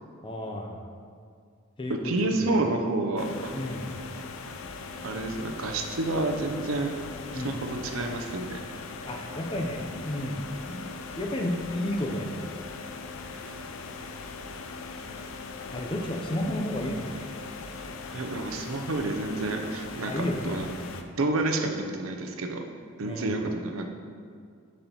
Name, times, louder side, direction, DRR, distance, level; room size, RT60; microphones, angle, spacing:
voice 1, 0.2-0.8 1.8-2.6 3.5-3.9 7.3-7.5 9.1-10.9 11.2-12.6 15.7-17.2 20.0-20.9 23.0-23.4, left 1 dB, 25° left, 1 dB, 0.6 m, -32 dB
voice 2, 1.9-3.5 5.0-6.9 7.3-8.6 13.5-13.6 18.1-20.6 21.2-22.6 23.0-23.9, right 2 dB, 75° right, 4 dB, 0.6 m, -29 dB
sound 1, 3.2-21.0, left 4 dB, 75° left, 0.4 m, -40 dB
10.5 x 4.2 x 2.9 m, 2.2 s
head